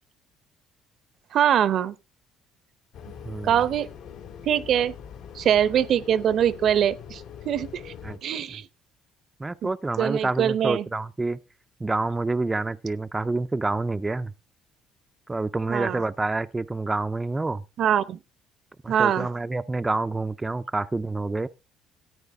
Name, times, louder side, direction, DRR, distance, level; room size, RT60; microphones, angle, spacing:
voice 1, 1.3-1.9 3.4-3.9 4.4-4.9 5.3-7.9 8.2-8.7 9.6-9.7 10.0-10.9 15.7-16.0 17.8-18.2 18.9-19.3, right 9 dB, 60° right, 0.8 m, -23 dB
sound 1, 2.9-8.2, left 8 dB, 75° left, 2.5 m, -42 dB
voice 2, 9.4-11.4 11.8-14.3 15.3-17.6 18.8-21.5, right 3 dB, 15° right, 0.5 m, -28 dB
13.5 x 8.9 x 3.5 m
cardioid pair, 95°, 0 cm